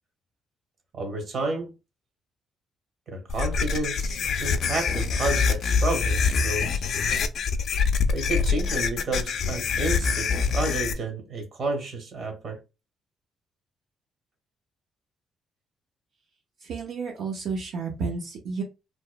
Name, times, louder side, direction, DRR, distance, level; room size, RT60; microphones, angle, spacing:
voice 1, 0.9-1.7 3.1-6.8 8.1-12.6, right 2 dB, 60° right, 1.0 m, -31 dB
sound 1, 3.3-10.9, left 5 dB, 65° left, 0.3 m, -25 dB
voice 2, 16.6-18.6, right 4 dB, 80° right, 0.6 m, -31 dB
3.0 x 2.0 x 2.2 m
cardioid pair, 90°, 0 cm